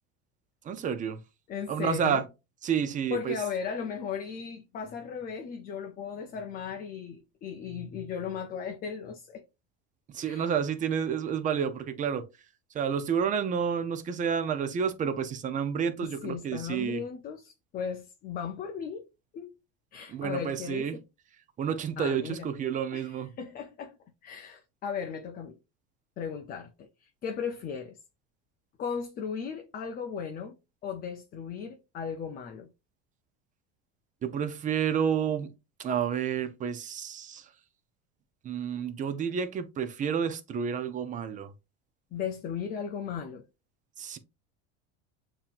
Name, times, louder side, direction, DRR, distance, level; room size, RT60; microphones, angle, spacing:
voice 1, 0.6-1.2 1.7-2.2 2.6-3.4 10.1-12.3 12.7-17.0 20.1-21.0 21.6-23.3 34.2-35.5 35.8-37.5 38.4-41.5 44.0-44.2, right 7 dB, 25° right, 0.5 m, -30 dB
voice 2, 1.5-2.3 3.1-9.4 10.2-10.5 16.0-19.1 19.3-19.5 19.9-21.0 22.0-22.5 22.9-24.0 24.2-25.6 26.2-28.0 28.8-32.7 42.1-43.4, left 7 dB, 30° left, 0.5 m, -36 dB
7.0 x 2.9 x 2.4 m
supercardioid pair, 140°, 32 cm